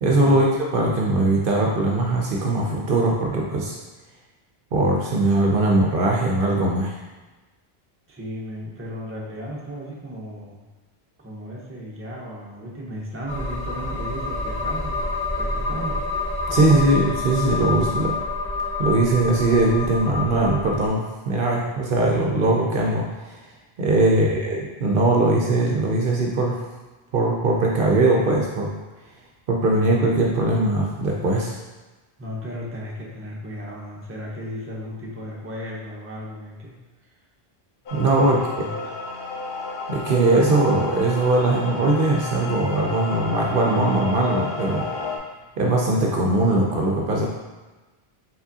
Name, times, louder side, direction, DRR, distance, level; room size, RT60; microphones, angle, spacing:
voice 1, 0.0-3.8 4.7-7.0 16.5-18.1 18.8-23.4 23.8-26.6 27.1-28.7 29.5-31.6 37.9-38.6 39.9-44.9 45.6-47.3, right 2 dB, 65° right, -2 dB, 0.7 m, -20 dB
voice 2, 8.1-10.6 11.2-16.0 16.5-16.8 32.2-36.7 38.3-38.9, equal, 15° right, -4 dB, 0.7 m, -35 dB
sound 1, 13.3-20.9, left 3 dB, 15° left, 0.5 m, -28 dB
sound 2, 37.9-45.2, left 3 dB, 70° left, 0.8 m, -32 dB
4.8 x 3.6 x 2.7 m, 1.2 s
omnidirectional pair, 1.0 m